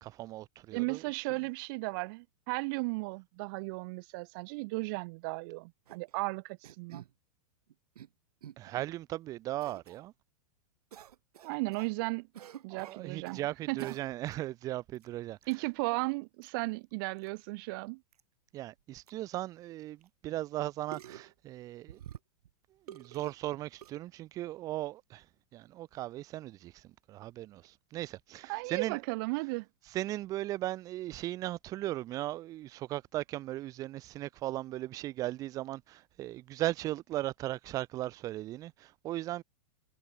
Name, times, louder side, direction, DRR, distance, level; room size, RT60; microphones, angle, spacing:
voice 1, 0.0-1.0 8.6-10.1 12.7-15.4 18.5-22.0 22.9-25.2 25.5-26.8 27.1-29.0 29.9-39.4, right 15 dB, 20° right, 0.8 m, -37 dB
voice 2, 0.7-7.0 11.4-12.3 12.6-13.4 13.7-13.9 15.5-18.0 28.5-29.7, right 28 dB, 35° right, 2.1 m, -35 dB
sound 1, 5.9-6.1 6.6-7.1 7.7-8.1 8.4-8.8 9.6-10.0 10.9-11.9 12.3-13.4 13.8-14.4 14.9-15.1 15.4-15.6 16.4-16.5 17.2-17.3 17.5-17.6 18.1-18.2 18.8-18.9 19.1-19.2 20.0-20.1 20.9-21.3 21.9-22.5 22.9-23.3 23.8-23.9, right 10 dB, 80° right, 4.3 m, -49 dB
supercardioid pair, 175°, 19 cm